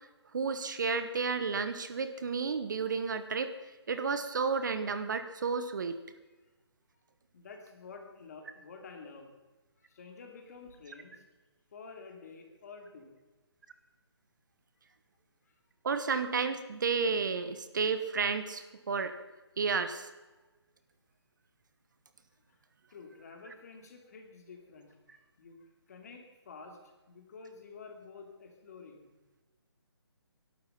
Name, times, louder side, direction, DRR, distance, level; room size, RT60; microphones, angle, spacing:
voice 1, 0.3-3.5 3.9-6.0 15.8-19.1 19.6-20.1, right 5 dB, 45° right, 10 dB, 1.1 m, -32 dB
voice 2, 7.3-9.3 9.8-11.2 11.7-13.1 15.4-15.6 22.5-22.6 22.9-26.8 27.1-29.1, left 4 dB, 35° left, 4 dB, 2.8 m, -50 dB
20.5 x 12.0 x 5.8 m, 1.2 s
hypercardioid pair, 165°, 14 cm